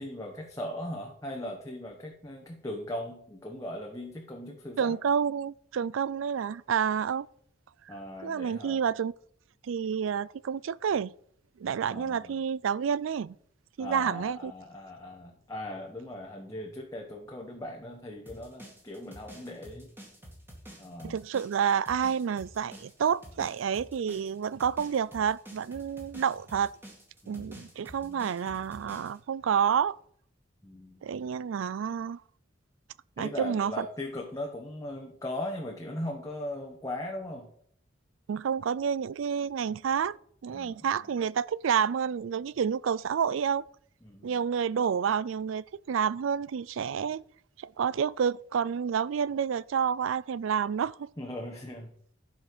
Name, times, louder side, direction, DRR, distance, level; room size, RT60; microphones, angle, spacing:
voice 1, 0.0-5.0 7.9-8.8 11.9-12.3 13.8-19.9 20.8-21.2 27.2-27.7 28.0-28.3 30.6-31.0 33.2-37.5 40.5-40.9 44.0-44.3 51.2-52.1, left 1 dB, 15° left, 1.1 m, -39 dB
voice 2, 4.8-7.3 7.9-8.0 8.2-9.1 9.6-11.1 11.6-13.4 13.8-14.5 21.0-26.7 27.3-30.0 31.0-32.2 33.2-33.9 38.3-40.2 40.4-43.6 44.2-47.2 47.6-51.1, right 7 dB, 85° right, 0.4 m, -29 dB
sound 1, 18.3-29.2, equal, 10° right, 2.2 m, -49 dB
11.5 x 5.6 x 6.0 m
head